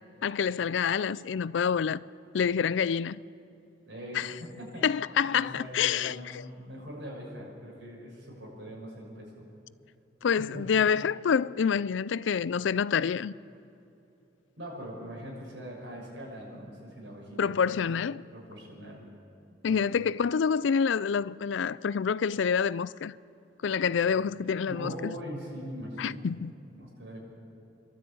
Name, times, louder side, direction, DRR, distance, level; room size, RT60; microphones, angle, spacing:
voice 1, 0.2-2.0 2.3-3.2 4.1-4.3 4.8-6.4 10.2-13.3 17.4-18.2 19.6-23.1 23.6-25.1 26.0-26.5, left 6 dB, 75° left, 0.4 m, -27 dB
voice 2, 3.8-4.9 5.3-9.5 10.4-10.7 14.6-18.1 18.3-19.0 19.7-19.8 24.6-26.3 26.7-27.2, equal, 70° right, 6.5 m, -42 dB
26.5 x 12.5 x 8.5 m
head